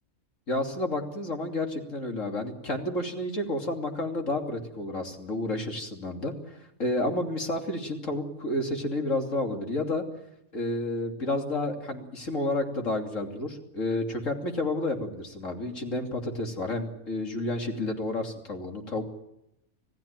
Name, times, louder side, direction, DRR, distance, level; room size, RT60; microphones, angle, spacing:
voice 1, 0.5-6.3 6.8-10.0 10.5-19.0, left 2 dB, 90° left, 3 dB, 3.3 m, -30 dB
27.0 x 16.5 x 9.0 m, 0.84 s
omnidirectional pair, 1.3 m